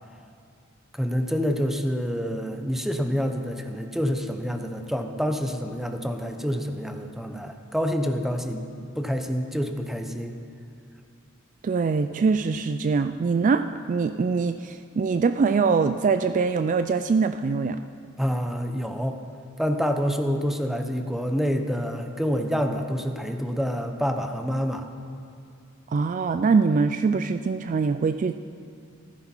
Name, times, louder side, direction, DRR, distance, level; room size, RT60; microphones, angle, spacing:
voice 1, 0.9-8.7 9.0-10.4 18.2-19.2 19.6-24.9, equal, ahead, 5 dB, 0.8 m, -27 dB
voice 2, 11.6-17.8 25.9-28.3, right 4 dB, 40° right, 9 dB, 0.3 m, -23 dB
14.5 x 14.0 x 4.5 m, 2.4 s
head